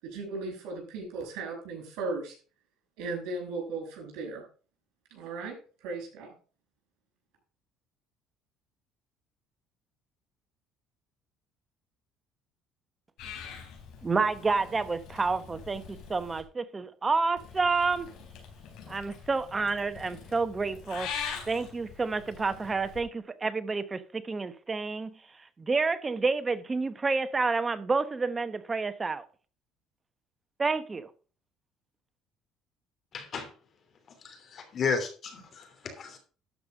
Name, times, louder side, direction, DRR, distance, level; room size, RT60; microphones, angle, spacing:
voice 1, 0.0-2.3 3.0-4.4 5.1-5.6 5.8-6.3, right 3 dB, 80° right, 6.1 m, -36 dB
Purr / Meow, 13.2-16.4 17.4-23.0, left 7 dB, 75° left, 3.9 m, -43 dB
voice 2, 14.0-18.1 18.9-21.1 21.5-25.2 25.6-29.2 30.6-31.1, right 4 dB, 25° right, 1.0 m, -29 dB
voice 3, 33.1-33.5 34.2-36.2, left 5 dB, 45° left, 3.0 m, -33 dB
12.5 x 5.3 x 5.2 m
cardioid pair, 105°, 0 cm